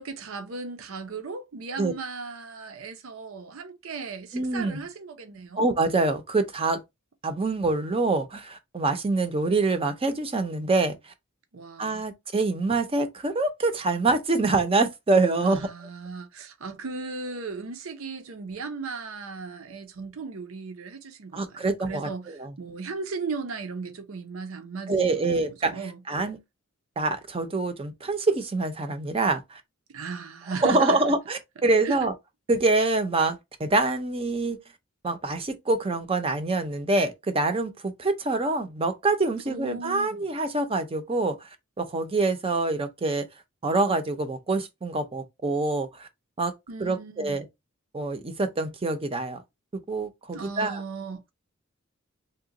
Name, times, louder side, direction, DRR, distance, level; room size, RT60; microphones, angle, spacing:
voice 1, 0.0-5.6 11.5-12.0 15.4-26.0 29.9-31.0 31.8-32.1 39.5-40.2 46.7-47.4 50.3-51.2, right 4 dB, 75° right, 0.6 m, -36 dB
voice 2, 4.3-4.8 5.6-6.8 7.2-11.0 11.8-15.7 21.3-22.5 24.9-25.8 26.1-26.4 27.0-29.6 30.6-32.1 32.5-34.6 35.0-41.5 41.8-43.3 43.6-46.1 46.4-46.5 46.8-47.5 47.9-49.4 49.7-50.8, right 3 dB, 25° right, 0.5 m, -25 dB
2.9 x 2.2 x 3.7 m
head